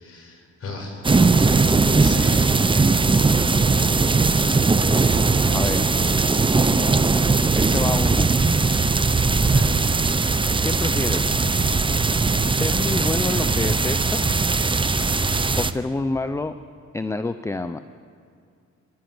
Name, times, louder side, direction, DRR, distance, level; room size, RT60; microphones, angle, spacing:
voice 1, 0.0-2.4 9.4-9.8, left 2 dB, 50° left, 2 dB, 5.6 m, -36 dB
sound 1, 1.0-15.7, right 3 dB, 15° right, 0.8 m, -19 dB
voice 2, 5.5-6.0 7.5-8.3 10.6-11.3 12.4-14.5 15.6-16.6 16.9-17.8, left 2 dB, 10° left, 11 dB, 0.5 m, -28 dB
29.5 x 11.5 x 7.8 m, 2.3 s
cardioid pair, 90°, 30 cm